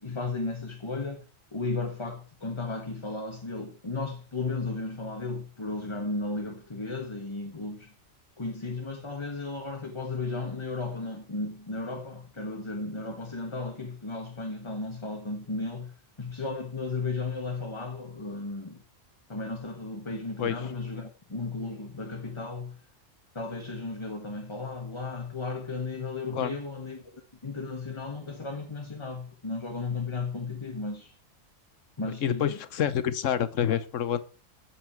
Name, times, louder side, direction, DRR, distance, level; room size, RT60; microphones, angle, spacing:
voice 1, 0.0-1.2 1.5-7.9 8.4-18.8 19.3-22.8 23.3-31.1 32.0-32.6, left 3 dB, 20° left, 1.5 m, -34 dB
voice 2, 32.2-34.2, left 9 dB, 70° left, 1.3 m, -27 dB
16.5 x 7.4 x 4.6 m
omnidirectional pair, 1.4 m